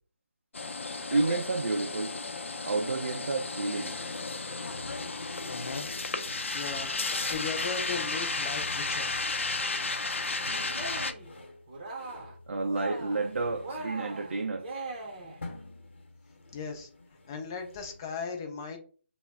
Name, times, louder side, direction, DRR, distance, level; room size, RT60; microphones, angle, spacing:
sound 1, 0.5-11.1, left 3 dB, 80° left, 0.4 m, -33 dB
voice 1, 1.1-2.1 2.7-3.9 10.5-10.6 11.0-11.1 12.5-14.7, right 3 dB, 80° right, 0.4 m, -30 dB
sound 2, 4.6-18.1, left 2 dB, 65° left, 0.8 m, -50 dB
voice 2, 6.5-6.9 7.3-9.1 16.5-16.9 17.3-18.8, left 5 dB, 20° left, 0.4 m, -36 dB
Cheering, 10.6-11.3 11.7-12.4 12.6-13.3 13.6-15.4, right 2 dB, 30° right, 0.7 m, -40 dB
2.1 x 2.1 x 3.4 m
figure-of-eight pair, 160°, 7 cm